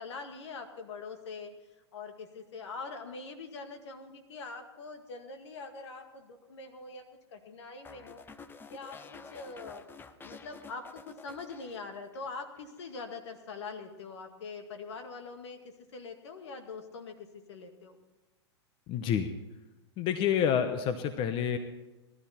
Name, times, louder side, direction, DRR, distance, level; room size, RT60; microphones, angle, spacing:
voice 1, 0.0-1.5 1.9-7.0 7.3-8.2 8.7-9.8 10.2-15.6 15.9-17.2 17.5-18.0, left 4 dB, 70° left, 6 dB, 2.0 m, -43 dB
sound 1, 7.8-12.3 12.6-13.0, left 4 dB, 15° left, 0.7 m, -50 dB
voice 2, 18.9-19.3 20.0-21.6, left 8 dB, 35° left, 9 dB, 1.0 m, -28 dB
18.0 x 12.5 x 4.4 m, 1.1 s
hypercardioid pair, 110°, 15 cm